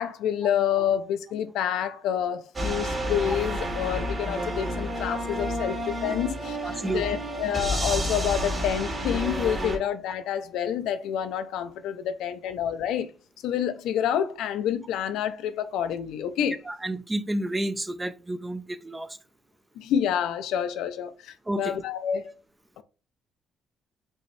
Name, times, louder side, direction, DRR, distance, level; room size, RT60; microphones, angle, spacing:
voice 1, 0.0-13.1 13.4-16.6 19.8-22.3, left 9 dB, 90° left, 0.5 m, -28 dB
sound 1, 2.5-9.8, equal, 35° right, 1.9 m, -30 dB
voice 2, 6.6-7.0 16.7-19.1 21.5-21.8, right 1 dB, 15° right, 0.5 m, -30 dB
5.5 x 3.0 x 3.1 m
cardioid pair, 90°, 0 cm